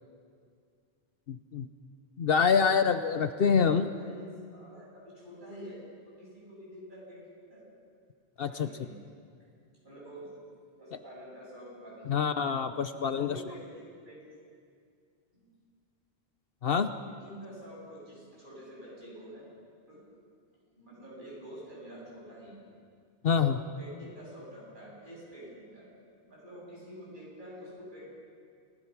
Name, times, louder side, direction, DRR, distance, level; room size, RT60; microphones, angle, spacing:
voice 1, 1.3-1.7 2.2-3.9 8.4-8.7 12.1-13.4 16.6-16.9 23.2-23.6, left 6 dB, 60° left, 10 dB, 0.9 m, -26 dB
voice 2, 3.6-5.8 6.0-7.7 8.4-8.9 9.8-10.3 10.8-12.3 12.9-14.3 15.3-15.5 17.1-19.5 19.9-20.2 20.8-22.7 23.4-25.9 26.2-28.1, equal, 45° right, -6 dB, 8.3 m, -48 dB
29.5 x 18.0 x 6.0 m, 2.2 s
omnidirectional pair, 1.1 m